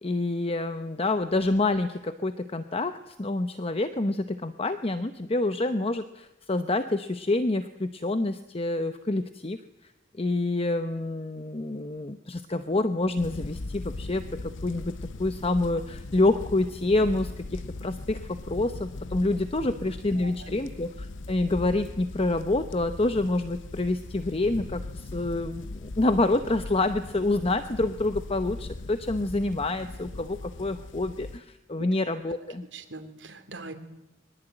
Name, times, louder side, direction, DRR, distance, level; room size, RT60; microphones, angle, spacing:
voice 1, 0.0-9.6 10.2-14.9 15.2-32.6, left 2 dB, 30° left, 9 dB, 0.9 m, -27 dB
sound 1, 13.2-31.4, left 2 dB, 90° left, 0.8 m, -40 dB
voice 2, 20.1-20.6 31.8-31.9 32.3-32.4 32.7-33.7, right 3 dB, 75° right, 6 dB, 3.2 m, -42 dB
23.5 x 20.0 x 9.1 m, 0.93 s
head